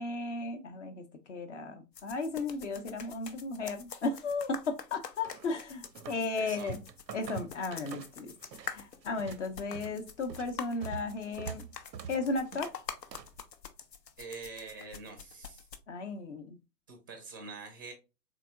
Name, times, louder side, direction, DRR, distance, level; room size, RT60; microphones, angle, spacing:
voice 1, 0.0-6.8 7.1-8.3 8.6-11.7 12.1-12.7 15.9-16.6, left 3 dB, 50° left, 6 dB, 0.6 m, -35 dB
sound 1, 1.9-15.8, left 7 dB, 90° left, 0.7 m, -47 dB
sound 2, 5.2-6.2 6.5-8.7 9.0-13.4, right 7 dB, 85° right, 0.6 m, -45 dB
voice 2, 6.4-6.8 14.2-15.7 16.9-17.9, right 4 dB, 15° right, 5 dB, 0.4 m, -45 dB
3.7 x 3.2 x 2.4 m, 0.27 s
figure-of-eight pair, 120°, 49 cm